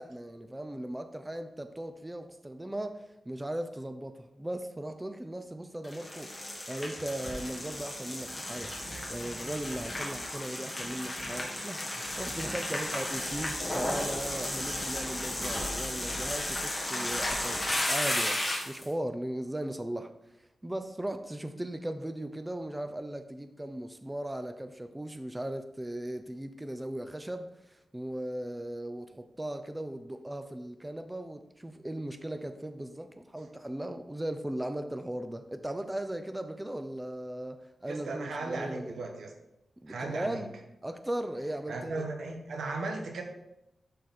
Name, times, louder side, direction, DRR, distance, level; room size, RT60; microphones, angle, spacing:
voice 1, 0.0-8.8 9.1-11.8 12.2-20.1 20.4-38.9 39.8-40.5 40.8-42.1, right 1 dB, 10° right, 8 dB, 0.5 m, -38 dB
sound 1, 5.8-18.8, left 1 dB, 20° left, 1.9 m, -34 dB
voice 2, 37.8-39.3 39.9-40.4 41.7-43.2, right 3 dB, 85° right, 2 dB, 1.4 m, -37 dB
11.5 x 4.0 x 4.3 m, 0.88 s
wide cardioid pair, 140°, 0 cm